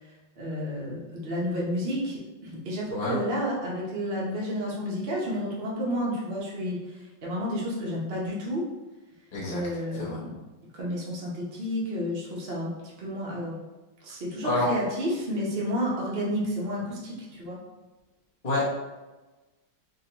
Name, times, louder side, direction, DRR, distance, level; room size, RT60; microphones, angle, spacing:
voice 1, 0.4-8.6 9.5-10.4 10.7-13.6 14.0-17.6, equal, 85° right, -5 dB, 0.5 m, -31 dB
voice 2, 2.9-3.2 9.3-9.6 9.9-10.2 14.4-14.7 18.4-18.6, left 2 dB, 80° left, -6 dB, 0.3 m, -28 dB
3.7 x 3.0 x 2.9 m, 1.1 s
omnidirectional pair, 2.4 m